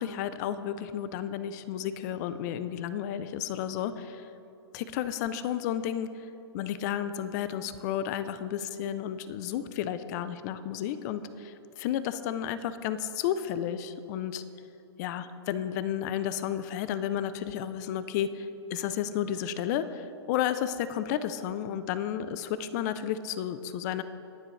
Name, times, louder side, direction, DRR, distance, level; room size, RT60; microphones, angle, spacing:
voice 1, 0.0-4.2 4.7-6.3 6.5-14.4 15.0-24.0, left 10 dB, 40° left, 13 dB, 0.6 m, -32 dB
20.5 x 7.6 x 3.2 m, 3.0 s
hypercardioid pair, 135°, 14 cm